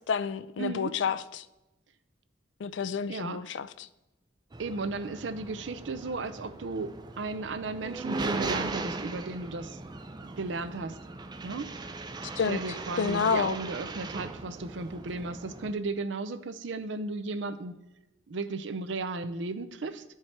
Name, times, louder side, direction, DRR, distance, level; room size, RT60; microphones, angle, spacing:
voice 1, 0.1-1.4 2.6-3.9 12.4-12.6 13.0-13.6, left 6 dB, 70° left, 0.4 m, -29 dB
voice 2, 0.6-0.9 3.1-3.4 4.6-9.8 10.4-11.0 11.4-11.7 12.5-17.7 18.3-20.0, right 3 dB, 75° right, 0.6 m, -35 dB
sound 1, 4.5-15.7, right 3 dB, 20° right, 0.4 m, -38 dB
11.0 x 4.7 x 4.3 m
head